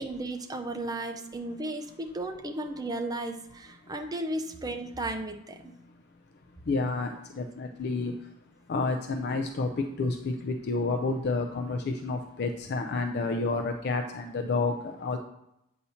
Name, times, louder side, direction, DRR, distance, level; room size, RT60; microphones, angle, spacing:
voice 1, 0.0-5.7, right 1 dB, 20° right, 4 dB, 0.6 m, -34 dB
voice 2, 6.7-8.3 8.7-15.2, left 3 dB, 55° left, 5 dB, 0.4 m, -30 dB
8.2 x 2.8 x 5.6 m, 0.83 s
head